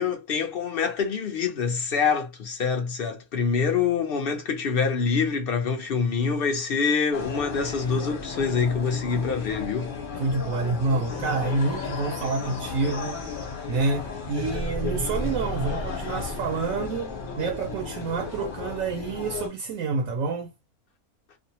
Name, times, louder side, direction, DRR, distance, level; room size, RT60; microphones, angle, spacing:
voice 1, 0.0-9.9, left 5 dB, 65° left, 0.5 m, -25 dB
sound 1, 7.1-19.5, left 5 dB, 40° left, 1.0 m, -35 dB
voice 2, 10.1-13.2 13.7-20.6, right 3 dB, 70° right, 0.9 m, -28 dB
sound 2, 11.1-18.4, left 1 dB, 15° left, 0.6 m, -36 dB
2.6 x 2.0 x 2.7 m
omnidirectional pair, 1.5 m